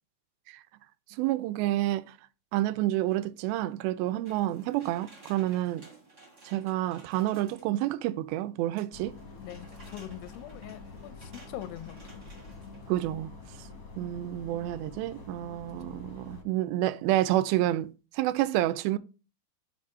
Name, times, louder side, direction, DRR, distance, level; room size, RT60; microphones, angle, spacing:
voice 1, 1.2-2.1 2.5-5.8 6.5-9.1 12.9-13.3 14.0-17.9 18.1-19.0, right 15 dB, 80° right, 2.3 m, -29 dB
sound 1, 4.2-7.9 8.8-13.2 13.5-13.6, right 2 dB, 25° right, 1.7 m, -55 dB
sound 2, 8.9-16.4, left 4 dB, 45° left, 1.5 m, -46 dB
voice 2, 9.4-12.2, left 13 dB, 80° left, 2.2 m, -43 dB
5.3 x 5.1 x 5.4 m
omnidirectional pair, 4.5 m